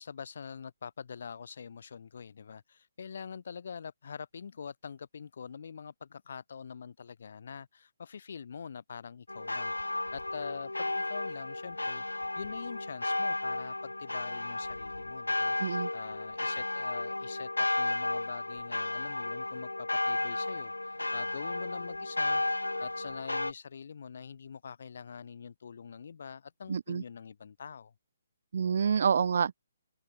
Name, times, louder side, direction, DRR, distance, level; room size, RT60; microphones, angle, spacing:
voice 1, 0.0-27.9, left 6 dB, 55° left, 5.5 m, -45 dB
sound 1, 9.3-23.5, left 2 dB, 80° left, 1.6 m, -33 dB
voice 2, 26.7-27.0 28.5-29.5, right 7 dB, 55° right, 0.4 m, -27 dB
figure-of-eight pair, 135°, 0 cm